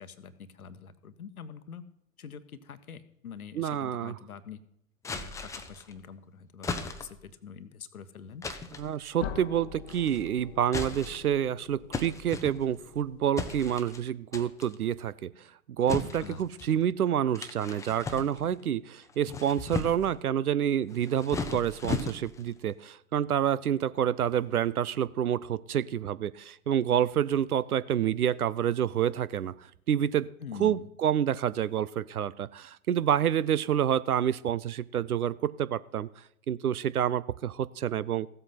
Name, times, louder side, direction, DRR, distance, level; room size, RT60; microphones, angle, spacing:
voice 1, 0.0-1.8 2.2-4.6 5.1-8.5 16.2-16.5 30.4-30.9, left 6 dB, 75° left, 12 dB, 1.2 m, -45 dB
voice 2, 3.5-4.2 8.8-15.5 15.8-30.3 30.6-38.3, right 9 dB, 80° right, 19 dB, 0.7 m, -28 dB
sound 1, 5.0-5.9 6.6-7.3 8.4-8.9 9.9-10.3 10.7-11.4 11.9-12.9 13.4-14.0 14.3-14.8 15.9-16.7 17.3-18.6 19.1-20.2 20.9-22.5, left 4 dB, 5° left, 0.7 m, -36 dB
sound 2, 9.2-13.9, left 8 dB, 55° left, 1.0 m, -44 dB
15.0 x 7.9 x 5.8 m, 0.74 s
figure-of-eight pair, 110°, 44 cm